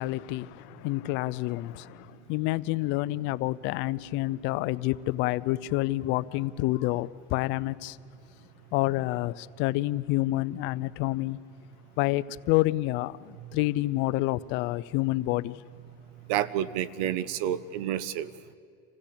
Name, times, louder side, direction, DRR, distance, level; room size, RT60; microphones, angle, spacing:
voice 1, 0.0-8.0 8.7-11.4 12.0-15.6, left 18 dB, 65° left, 0.6 m, -28 dB
voice 2, 16.3-18.3, right 11 dB, 80° right, 0.9 m, -29 dB
26.5 x 16.5 x 8.6 m
supercardioid pair, 130°, 21 cm